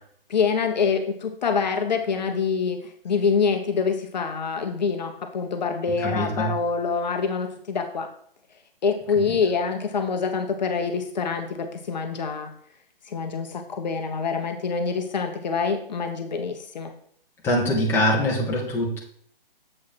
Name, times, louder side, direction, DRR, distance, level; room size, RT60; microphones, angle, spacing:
voice 1, 0.3-8.1 8.8-12.5 13.1-16.9, left 5 dB, 45° left, 6 dB, 0.9 m, -26 dB
voice 2, 6.0-6.5 17.4-19.0, left 1 dB, 10° left, -3 dB, 1.1 m, -23 dB
7.4 x 4.7 x 4.4 m, 0.64 s
figure-of-eight pair, 140°, 29 cm